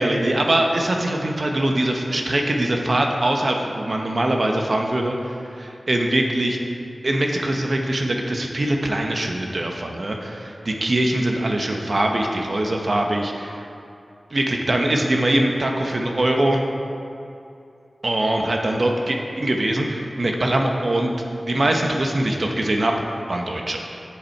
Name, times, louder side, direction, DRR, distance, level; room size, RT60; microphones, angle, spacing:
voice 1, 0.0-6.6 7.0-13.6 14.3-16.6 18.0-21.1 21.4-22.9 23.3-23.8, right 1 dB, 60° right, 2 dB, 1.1 m, -22 dB
10.0 x 8.3 x 4.6 m, 2.6 s
wide cardioid pair, 55°, 0 cm